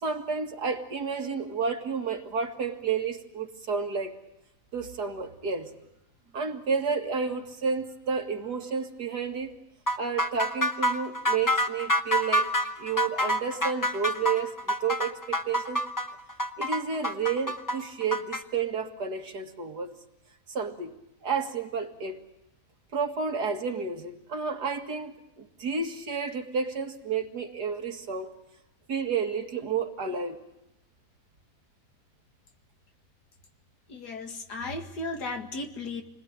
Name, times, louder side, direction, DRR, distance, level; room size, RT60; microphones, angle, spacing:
voice 1, 0.0-4.2 4.7-5.7 6.3-9.5 10.0-12.5 12.8-15.8 16.6-20.0 20.5-20.9 21.2-22.2 22.9-28.3 28.9-30.4, right 5 dB, 70° right, 4 dB, 2.5 m, -31 dB
sound 1, 9.9-18.4, equal, 15° left, 0.8 m, -27 dB
voice 2, 33.9-36.0, left 2 dB, 75° left, 5 dB, 2.6 m, -35 dB
28.5 x 20.5 x 8.7 m, 0.89 s
omnidirectional pair, 1.8 m